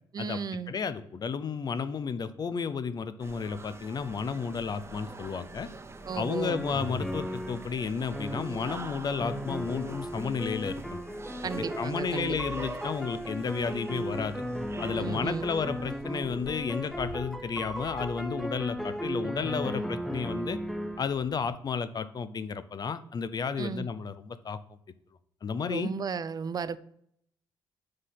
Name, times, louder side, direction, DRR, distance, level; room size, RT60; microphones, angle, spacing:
voice 1, 0.1-0.7 6.1-6.6 11.4-12.4 14.9-15.5 23.6-23.9 25.7-26.8, right 6 dB, 45° right, 0.4 m, -34 dB
voice 2, 0.7-5.7 6.1-11.0 11.6-14.4 14.8-20.6 21.0-24.8 25.4-25.9, left 6 dB, 45° left, 0.5 m, -32 dB
sound 1, 3.2-17.0, right 2 dB, 25° right, 0.9 m, -45 dB
sound 2, 4.4-21.5, equal, 25° left, 2.3 m, -51 dB
sound 3, 6.4-7.7 8.1-8.9 9.2-21.0, equal, ahead, 0.7 m, -36 dB
5.1 x 4.1 x 5.6 m
supercardioid pair, 60°, 10 cm